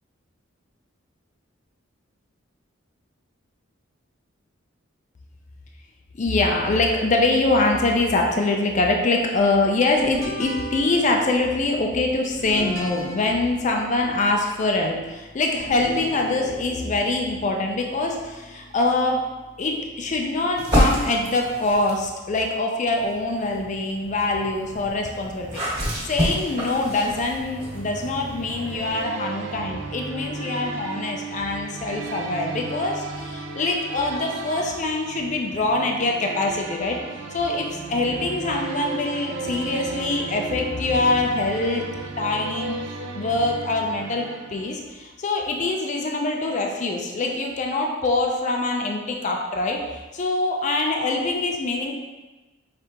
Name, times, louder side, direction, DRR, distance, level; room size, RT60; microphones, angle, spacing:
voice 1, 6.2-19.2 19.6-25.6 26.0-37.0 37.3-41.9 42.2-42.8 43.1-51.9, left 2 dB, 35° left, 1 dB, 0.4 m, -24 dB
sound 1, 10.0-20.6, left 1 dB, 90° left, 1.0 m, -38 dB
sound 2, 20.6-22.1 22.8-29.0, equal, 25° right, 1.4 m, -28 dB
sound 3, 27.4-45.1, right 3 dB, 65° right, 0.4 m, -35 dB
5.0 x 3.3 x 2.9 m, 1.2 s
head